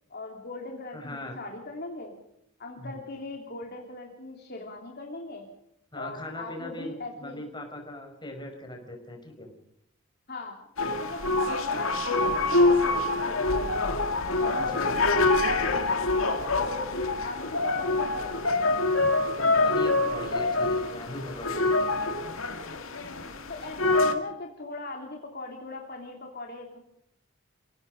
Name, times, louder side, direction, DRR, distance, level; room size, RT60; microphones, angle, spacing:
voice 1, 0.1-2.1 2.6-5.5 5.9-7.4 10.3-10.5 10.8-13.8 14.3-18.5 23.5-26.8, left 2 dB, 50° left, 1 dB, 3.0 m, -40 dB
voice 2, 0.9-1.4 2.8-3.0 5.9-9.5 14.5-15.1 19.3-22.1, left 1 dB, 20° left, 3 dB, 5.4 m, -40 dB
sound 1, 10.8-24.1, left 2 dB, 85° left, 2.2 m, -25 dB
28.5 x 17.5 x 5.3 m, 0.74 s
head